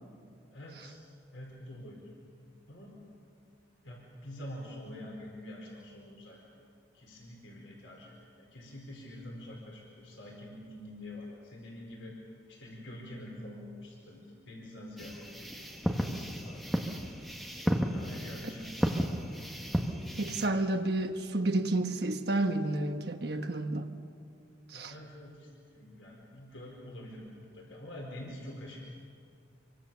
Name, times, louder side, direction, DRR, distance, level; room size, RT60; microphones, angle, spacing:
voice 1, 0.5-1.0 1.3-2.1 2.7-3.0 3.8-6.7 6.9-12.2 12.5-15.6 16.1-17.2 17.9-19.1 24.7-28.8, left 1 dB, 90° left, 4.5 m, -46 dB
sound 1, 15.0-20.5, equal, ahead, 1.3 m, -33 dB
voice 2, 20.2-23.9 24.7-24.9, right 2 dB, 55° right, 1.3 m, -30 dB
26.0 x 24.0 x 7.0 m
head